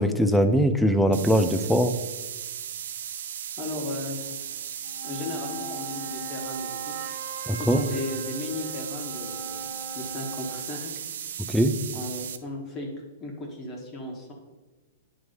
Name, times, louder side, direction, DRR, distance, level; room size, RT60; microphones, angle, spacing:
voice 1, 0.0-1.9 7.5-7.8 11.5-11.7, equal, ahead, 7 dB, 0.5 m, -21 dB
sound 1, 1.1-12.4, right 9 dB, 70° right, 0.4 m, -36 dB
voice 2, 3.6-4.6 5.0-7.0 7.6-9.7 9.9-10.9 11.9-12.9 13.2-14.3, left 2 dB, 25° left, -1 dB, 1.3 m, -35 dB
sound 2, 4.7-10.9, right 3 dB, 50° right, 1.5 m, -40 dB
9.3 x 3.2 x 5.2 m, 1.2 s
hypercardioid pair, 135°, 0 cm